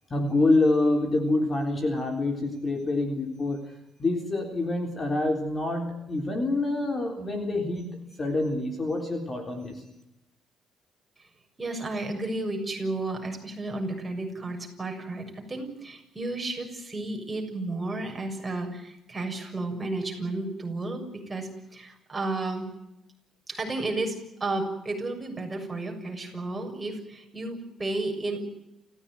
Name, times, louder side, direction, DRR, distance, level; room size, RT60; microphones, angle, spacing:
voice 1, 0.1-3.7 4.0-9.8, left 2 dB, 25° left, 4 dB, 3.8 m, -26 dB
voice 2, 11.6-22.7 23.5-28.4, right 2 dB, 15° right, 2 dB, 6.8 m, -32 dB
29.5 x 15.5 x 9.4 m, 0.87 s
cardioid pair, 130°, 0 cm